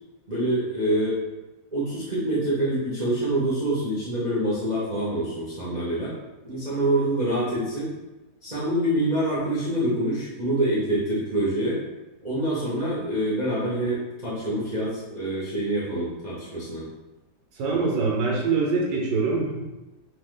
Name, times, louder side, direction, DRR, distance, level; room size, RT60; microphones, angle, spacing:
voice 1, 0.3-1.2 1.7-6.1 6.4-7.9 8.4-11.8 12.2-16.8, right 1 dB, 35° right, -9 dB, 0.8 m, -26 dB
voice 2, 17.5-19.6, right 4 dB, 75° right, -1 dB, 1.6 m, -24 dB
3.8 x 2.9 x 3.7 m, 1.1 s
omnidirectional pair, 2.2 m